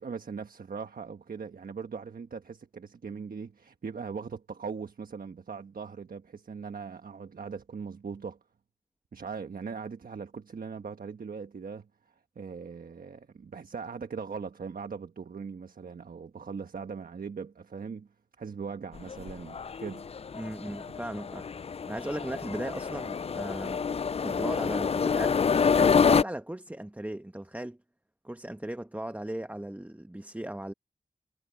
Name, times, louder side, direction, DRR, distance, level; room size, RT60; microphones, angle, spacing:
voice 1, 0.0-8.4 9.1-18.1 18.4-20.1, right 5 dB, 80° right, 1.3 m, -40 dB
sound 1, 19.0-26.2, left 6 dB, 45° left, 0.4 m, -27 dB
voice 2, 20.3-21.5 21.9-23.9 24.2-27.8 28.2-30.7, right 1 dB, 10° right, 1.2 m, -37 dB
cardioid pair, 55°, 15 cm